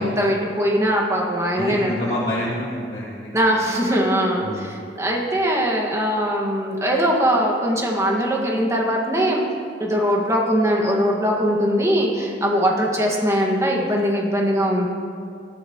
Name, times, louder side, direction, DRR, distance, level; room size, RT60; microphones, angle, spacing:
voice 1, 0.0-2.2 3.3-9.4 9.8-14.9, equal, 15° right, -1 dB, 1.9 m, -21 dB
voice 2, 1.5-3.4 4.4-4.7, left 1 dB, 35° left, -8 dB, 2.1 m, -28 dB
19.0 x 14.0 x 3.1 m, 2.4 s
head